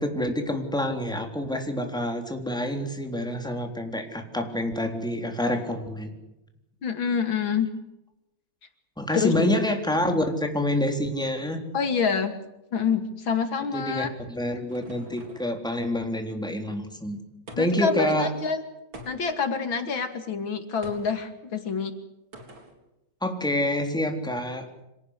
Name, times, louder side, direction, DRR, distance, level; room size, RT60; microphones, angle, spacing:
voice 1, 0.0-6.1 9.0-11.6 13.7-17.2 17.6-18.3 23.2-24.7, left 1 dB, ahead, 4 dB, 3.4 m, -27 dB
voice 2, 6.8-7.7 9.1-9.5 11.7-12.3 12.7-14.1 17.6-18.6 19.1-21.9, left 6 dB, 75° left, 8 dB, 3.2 m, -27 dB
sound 1, 14.2-15.6 17.5-18.0 18.9-19.5 20.8-21.2 22.3-22.8, equal, 80° right, 4.6 m, -45 dB
26.5 x 18.0 x 8.2 m, 0.90 s
omnidirectional pair, 2.1 m